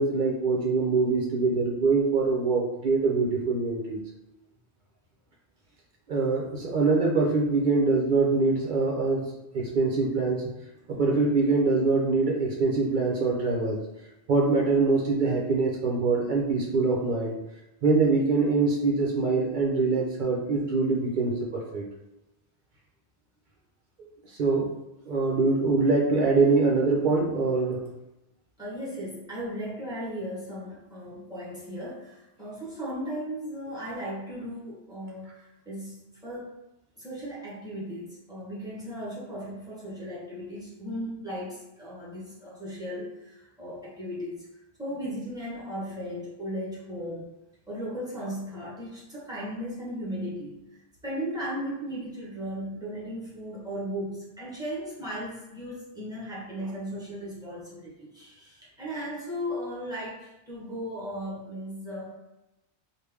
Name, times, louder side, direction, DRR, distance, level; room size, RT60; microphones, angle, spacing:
voice 1, 0.0-4.0 6.1-9.3 9.5-10.4 10.9-13.8 14.3-17.4 17.8-21.8 24.3-24.7 25.1-27.8, right 3 dB, 55° right, -2 dB, 0.6 m, -24 dB
voice 2, 28.6-36.5 37.0-44.5 44.8-47.3 47.7-50.6 51.0-62.1, equal, 5° right, -8 dB, 1.0 m, -36 dB
3.2 x 2.4 x 3.4 m, 0.96 s
omnidirectional pair, 1.1 m